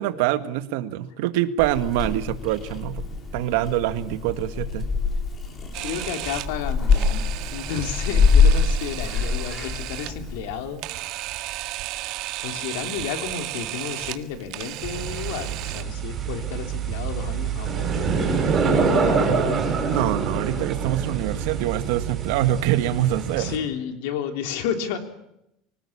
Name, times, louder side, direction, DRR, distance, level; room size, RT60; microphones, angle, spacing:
voice 1, 0.0-3.0 3.3-4.9 19.9-23.5, right 13 dB, 75° right, 11 dB, 1.7 m, -25 dB
Purr / Meow, 1.6-10.4, left 5 dB, 30° left, 4.1 m, -24 dB
Camera, 5.7-15.8, right 16 dB, 55° right, 1.6 m, -34 dB
voice 2, 5.8-10.8 12.4-19.6 23.4-25.0, left 8 dB, 80° left, 6 dB, 3.3 m, -32 dB
sound 1, 14.8-23.6, right 5 dB, 25° right, 5.9 m, -25 dB
25.0 x 19.0 x 8.7 m, 0.83 s
cardioid pair, 145°, 0 cm